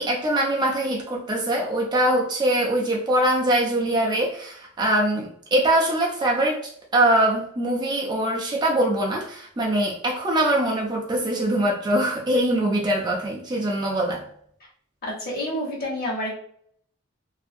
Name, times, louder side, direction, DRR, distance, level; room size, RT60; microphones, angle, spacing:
voice 1, 0.0-6.6 6.9-14.2, right 1 dB, 20° right, -1 dB, 0.4 m, -23 dB
voice 2, 15.0-16.4, equal, 45° left, -3 dB, 1.1 m, -28 dB
2.7 x 2.4 x 2.5 m, 0.63 s
head